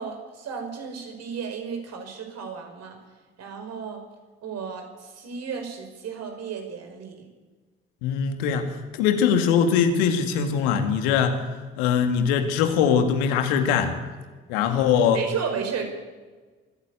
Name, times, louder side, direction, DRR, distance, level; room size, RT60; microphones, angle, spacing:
voice 1, 0.0-3.0 3.4-4.0 4.4-7.3 15.1-15.9, right 6 dB, 60° right, 4 dB, 5.2 m, -33 dB
voice 2, 8.0-11.4 11.8-14.0 14.5-15.2, left 7 dB, 75° left, 7 dB, 2.2 m, -22 dB
24.0 x 14.5 x 8.4 m, 1.4 s
figure-of-eight pair, 40°, 30 cm